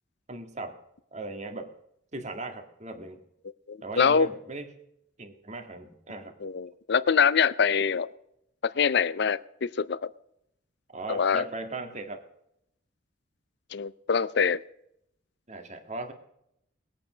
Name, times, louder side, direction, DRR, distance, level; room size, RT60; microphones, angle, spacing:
voice 1, 0.3-0.8 1.1-1.7 2.1-3.2 3.8-4.7 5.2-6.3 10.9-12.2 15.5-16.1, right 2 dB, 35° right, 5 dB, 1.8 m, -38 dB
voice 2, 3.7-4.3 6.4-8.1 8.7-10.1 11.1-11.5 13.7-14.6, left 6 dB, 60° left, 17 dB, 0.5 m, -24 dB
20.5 x 8.8 x 5.0 m, 0.77 s
head